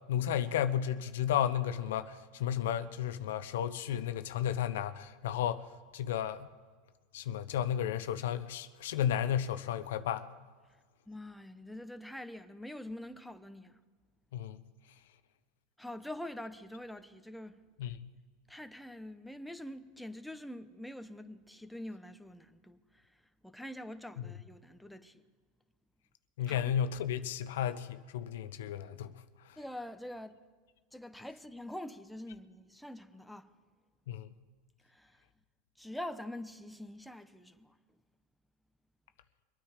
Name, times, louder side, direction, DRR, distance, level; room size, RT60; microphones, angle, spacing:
voice 1, 0.1-5.7 5.9-6.5 7.1-10.3 14.3-14.6 17.8-18.1 24.2-24.3 26.4-29.1 29.5-29.6 34.1-34.3, left 10 dB, 85° left, 0.7 m, -33 dB
voice 2, 11.1-13.8 15.8-18.0 18.5-25.2 26.5-26.7 29.6-30.4 30.9-33.5 34.8-35.2 35.8-37.8, left 1 dB, ahead, 0.8 m, -45 dB
24.0 x 9.4 x 4.9 m
supercardioid pair, 120°, 0 cm